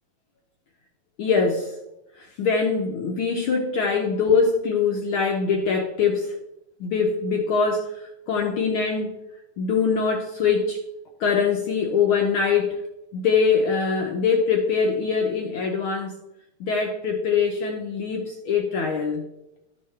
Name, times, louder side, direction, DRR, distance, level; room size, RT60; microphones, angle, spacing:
voice 1, 1.2-1.7 2.2-6.4 6.8-9.1 9.6-10.8 11.2-12.8 13.1-16.1 16.6-19.2, left 5 dB, 75° left, 1 dB, 1.1 m, -23 dB
12.0 x 5.6 x 3.3 m, 0.92 s
omnidirectional pair, 3.3 m